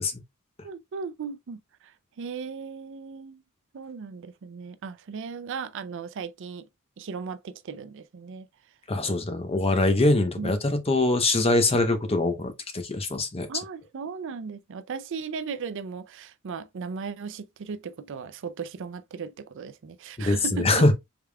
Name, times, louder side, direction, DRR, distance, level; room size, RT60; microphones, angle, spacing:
voice 1, 0.6-3.4 3.7-6.7 7.0-8.5 10.4-10.5 13.5-20.9, right 5 dB, 60° right, 0.4 m, -37 dB
voice 2, 8.9-13.5 20.2-20.9, left 2 dB, 30° left, 0.7 m, -23 dB
4.9 x 3.5 x 2.2 m
head